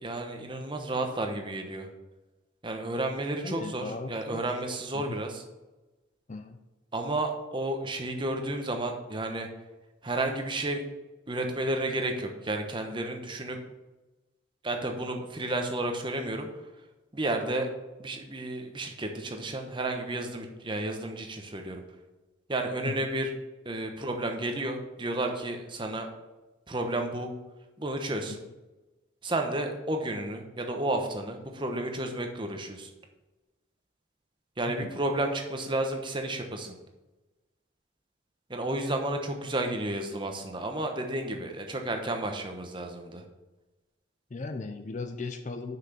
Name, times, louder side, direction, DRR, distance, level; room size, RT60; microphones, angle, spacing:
voice 1, 0.0-1.9 2.6-5.4 6.9-9.5 10.0-10.8 11.3-13.6 14.6-16.5 17.1-17.7 18.0-21.8 22.5-23.3 23.6-26.1 26.7-27.3 27.8-28.4 29.2-32.9 34.6-36.8 38.5-43.2, right 1 dB, 25° right, 4 dB, 1.0 m, -32 dB
voice 2, 3.4-4.6 4.9-5.2 6.3-6.6 22.9-23.0 28.3-28.4 34.7-34.9 44.3-45.8, left 3 dB, 40° left, 7 dB, 0.5 m, -37 dB
6.3 x 6.0 x 6.7 m, 1.1 s
head